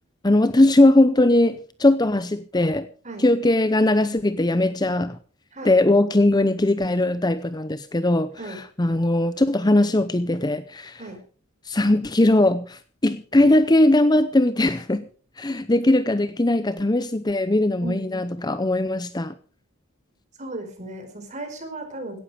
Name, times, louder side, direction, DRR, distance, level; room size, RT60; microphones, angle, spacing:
voice 1, 0.2-2.9 3.2-5.2 5.6-11.0 11.7-15.1 15.4-19.3, left 1 dB, 20° left, 0.7 m, -20 dB
voice 2, 17.8-18.3 20.4-22.2, right 2 dB, 35° right, 4.7 m, -35 dB
17.0 x 12.5 x 4.9 m
head